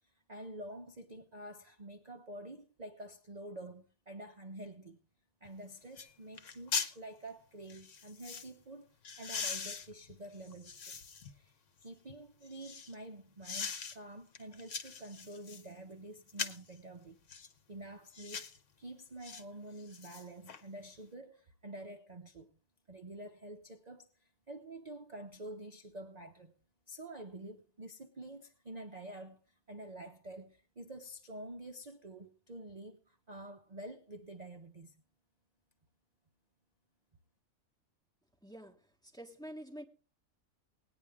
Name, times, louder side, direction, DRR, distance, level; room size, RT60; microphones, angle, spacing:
voice 1, 0.3-5.0 5.4-17.2 17.7-22.6 22.9-26.5 26.9-35.0, right 1 dB, 35° right, 0.9 m, -48 dB
sound 1, 5.4-5.5 6.0-6.1 6.4-7.0 7.7-8.5 9.0-11.3 11.8-12.9 13.4-14.0 14.3-15.7 16.3-16.7 17.3-17.5 18.1-18.6 19.2-19.4 19.8-20.6 21.0-21.1, left 6 dB, 60° left, 1.4 m, -41 dB
voice 2, 38.4-39.8, equal, 5° left, 1.4 m, -48 dB
19.0 x 9.8 x 3.5 m
omnidirectional pair, 1.5 m